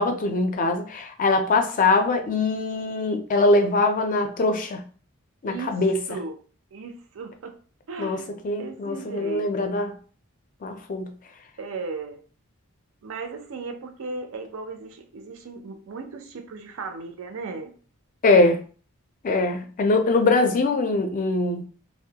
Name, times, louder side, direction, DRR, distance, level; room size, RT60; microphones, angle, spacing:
voice 1, 0.0-4.8 5.4-6.0 8.0-9.9 10.6-11.1 18.2-18.6 19.2-21.6, left 2 dB, 40° left, 0.4 m, -22 dB
voice 2, 5.4-5.8 6.1-6.4 6.7-7.6 7.9-8.2 8.6-9.8 11.6-12.2 13.0-17.7, right 3 dB, 65° right, 0.4 m, -36 dB
2.2 x 2.1 x 2.7 m
head